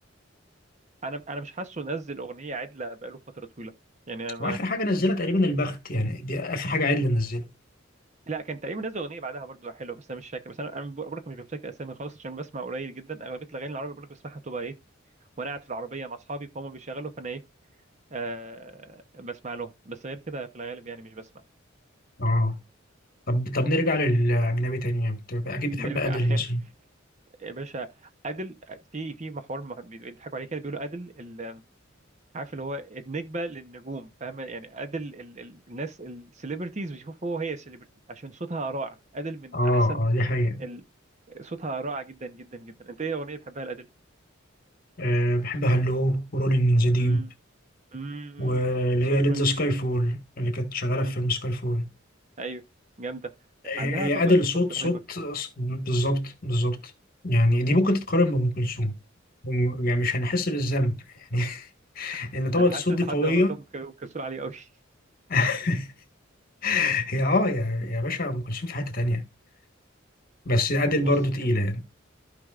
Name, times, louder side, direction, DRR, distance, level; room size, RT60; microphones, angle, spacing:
voice 1, 1.0-3.7 4.1-4.6 8.3-14.8 15.4-17.4 18.1-21.3 25.8-26.4 27.4-27.9 28.2-31.6 32.3-40.1 40.6-40.8 41.3-43.9 47.0-47.3 47.9-48.8 49.1-49.6 50.9-51.1 52.4-52.6 53.0-53.3 53.8-54.4 54.8-54.9 62.6-64.7 71.0-71.2, right 3 dB, 35° right, 0.8 m, -36 dB
voice 2, 4.4-7.4 22.2-22.6 23.3-26.6 39.5-40.6 45.0-47.2 48.4-51.9 53.7-56.8 57.2-58.9 59.4-61.0 61.3-61.7 61.9-63.5 65.3-65.9 66.6-69.2 70.4-71.8, left 1 dB, 45° left, 1.5 m, -24 dB
14.0 x 5.1 x 2.4 m
head